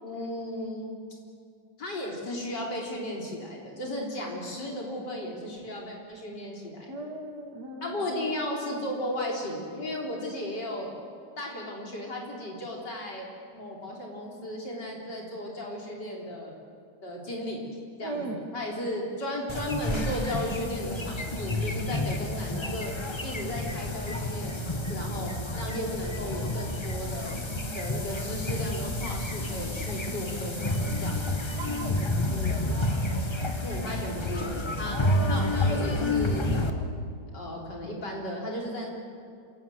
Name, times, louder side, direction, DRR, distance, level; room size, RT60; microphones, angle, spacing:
voice 1, 0.0-1.0 1.8-6.9 7.8-10.9 11.4-13.3 13.5-16.5 17.0-17.6 18.0-22.9 23.2-27.4 27.7-31.2 33.6-35.0 35.3-37.0 37.3-38.9, left 1 dB, 70° left, -2 dB, 4.5 m, -35 dB
voice 2, 6.9-8.1 18.0-18.5 31.6-32.8 34.8-35.9, right 2 dB, 65° right, 3 dB, 3.0 m, -38 dB
sound 1, 19.5-36.7, left 1 dB, 20° left, 1.1 m, -30 dB
27.5 x 17.5 x 7.9 m, 2.3 s
omnidirectional pair, 2.0 m